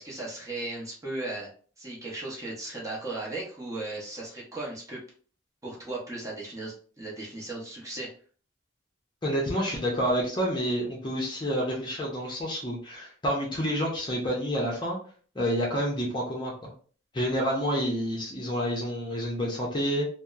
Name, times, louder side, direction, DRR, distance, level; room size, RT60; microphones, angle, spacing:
voice 1, 0.0-1.5 1.8-5.0 5.6-8.1, right 2 dB, 15° right, -4 dB, 0.6 m, -36 dB
voice 2, 9.2-15.0 15.3-16.7 17.1-20.1, equal, 25° left, -2 dB, 0.6 m, -28 dB
2.8 x 2.0 x 2.3 m, 0.43 s
head